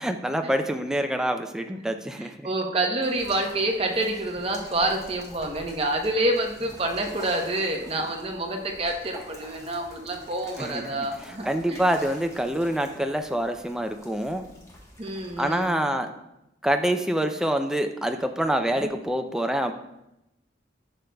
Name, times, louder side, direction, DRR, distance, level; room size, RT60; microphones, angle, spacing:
voice 1, 0.0-2.5 10.6-11.1 11.5-14.4 15.4-16.1 16.6-19.8, right 1 dB, 5° right, 5 dB, 0.4 m, -26 dB
voice 2, 2.2-11.8 15.0-15.7 18.7-18.9, right 1 dB, 30° right, 2 dB, 0.9 m, -28 dB
sound 1, 3.0-15.7, left 1 dB, 15° left, 1.1 m, -47 dB
10.5 x 6.4 x 2.3 m, 0.88 s
head